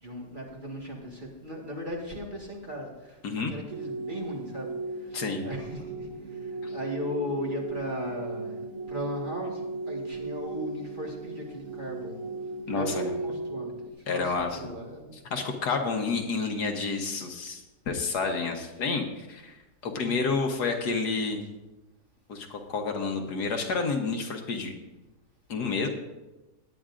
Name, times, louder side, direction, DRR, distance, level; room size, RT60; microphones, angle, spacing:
voice 1, 0.0-3.2 3.5-4.7 5.1-6.1 6.7-12.2 12.7-15.1 20.0-20.2, equal, 30° right, -1 dB, 1.7 m, -37 dB
sound 1, 3.7-13.9, right 2 dB, 60° right, 1.1 m, -37 dB
voice 2, 5.1-5.4 6.6-6.7 12.7-13.0 14.1-14.6 15.3-21.4 22.3-24.7 25.5-25.9, left 4 dB, 75° left, 4 dB, 1.6 m, -30 dB
18.0 x 9.3 x 2.5 m, 1.1 s
omnidirectional pair, 1.8 m